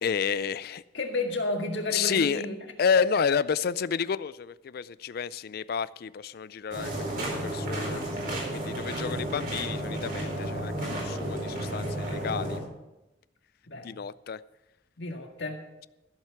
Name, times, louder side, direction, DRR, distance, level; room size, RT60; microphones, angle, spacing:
voice 1, 0.0-0.8 1.9-2.4 2.8-8.0 8.5-12.6 13.8-14.4, left 6 dB, 55° left, 18 dB, 0.4 m, -30 dB
voice 2, 0.9-2.6 3.0-3.2 13.7-13.9 15.0-15.6, left 2 dB, 70° left, 3 dB, 1.9 m, -31 dB
sound 1, 6.7-12.6, right 1 dB, 50° right, 4.3 m, -32 dB
14.5 x 7.6 x 5.9 m, 0.97 s
head